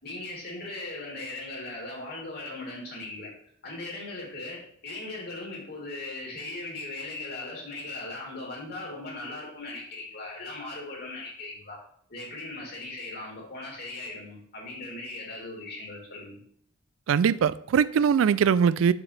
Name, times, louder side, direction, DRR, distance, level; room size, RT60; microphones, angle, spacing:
voice 1, 0.0-3.3 3.6-11.8 12.1-16.4, left 2 dB, 50° left, -3 dB, 3.1 m, -38 dB
voice 2, 17.1-18.9, right 7 dB, 80° right, 17 dB, 0.3 m, -21 dB
7.1 x 7.0 x 3.3 m, 0.65 s
head